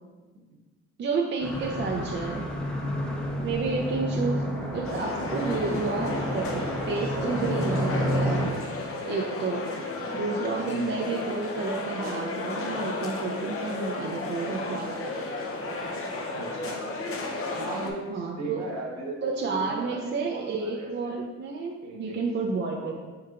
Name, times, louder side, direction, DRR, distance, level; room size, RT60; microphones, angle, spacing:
voice 1, 1.0-2.4 3.4-4.4 4.7-6.5 6.9-8.4 9.1-9.6 10.1-15.1 18.1-18.6 19.2-22.9, right 4 dB, 40° right, -1 dB, 0.5 m, -30 dB
sound 1, 1.4-8.5, equal, 5° left, 0.7 m, -30 dB
sound 2, 4.8-17.9, left 2 dB, 45° left, 0.7 m, -33 dB
voice 2, 16.3-16.8 17.6-21.2 21.8-22.3 22.8-22.9, right 2 dB, 65° right, -1 dB, 1.2 m, -36 dB
4.6 x 4.5 x 2.4 m, 1.3 s
cardioid pair, 90°, 30 cm